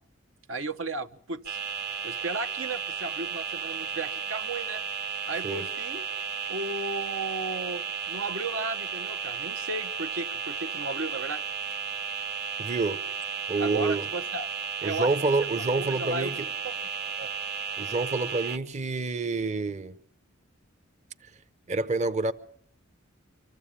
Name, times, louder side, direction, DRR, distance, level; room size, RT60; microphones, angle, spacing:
voice 1, 0.5-1.6 2.0-4.8 5.3-6.1 6.5-11.4 13.6-14.5 14.8-15.1 15.8-16.4 16.6-16.9 17.2-17.3, right 3 dB, 75° right, 0.9 m, -34 dB
sound 1, 1.4-18.6, right 6 dB, 55° right, 1.5 m, -34 dB
voice 2, 12.6-13.0 13.5-14.0 14.8-16.4 17.8-20.0 21.7-22.3, right 3 dB, 35° right, 0.8 m, -28 dB
24.5 x 14.5 x 8.7 m
head